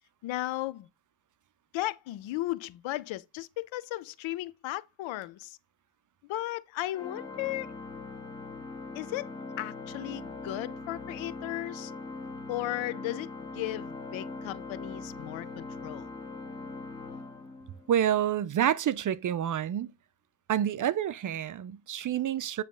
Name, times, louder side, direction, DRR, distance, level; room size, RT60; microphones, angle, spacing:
voice 1, 0.2-0.9 1.7-5.6 6.2-7.7 8.9-9.3 9.6-11.9 12.5-16.1, left 16 dB, 85° left, 0.7 m, -35 dB
Organ, 6.9-18.1, left 3 dB, 10° left, 2.5 m, -41 dB
voice 2, 17.9-19.9 20.5-22.6, right 10 dB, 45° right, 0.6 m, -28 dB
9.1 x 3.2 x 5.3 m
cardioid pair, 110°, 45 cm